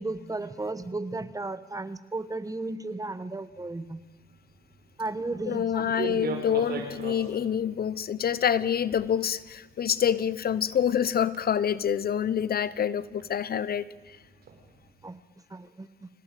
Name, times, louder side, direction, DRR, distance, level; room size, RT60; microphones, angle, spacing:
voice 1, 0.0-4.0 5.0-5.9 15.0-15.2 15.5-16.1, right 2 dB, 15° right, 14 dB, 1.3 m, -34 dB
sound 1, 3.5-14.9, right 5 dB, 50° right, 5.4 m, -42 dB
voice 2, 5.5-13.9, left 8 dB, 50° left, 18 dB, 0.9 m, -27 dB
25.5 x 18.0 x 9.3 m, 1.2 s
cardioid pair, 90°, 20 cm